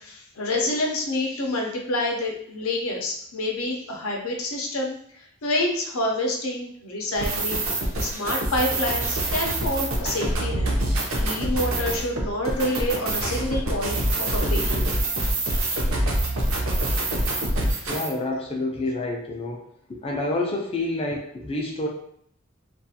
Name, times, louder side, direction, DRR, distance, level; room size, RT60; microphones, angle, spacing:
voice 1, 0.0-5.0 5.4-7.7 8.0-10.7 11.2-14.0 14.3-14.9 15.2-15.4, left 1 dB, 80° left, 1 dB, 0.6 m, -27 dB
sound 1, 7.1-18.1, right 1 dB, 70° right, 0.6 m, -25 dB
voice 2, 17.9-19.6 19.9-21.9, left 2 dB, 25° left, 0 dB, 0.4 m, -28 dB
2.4 x 2.3 x 2.7 m, 0.67 s
head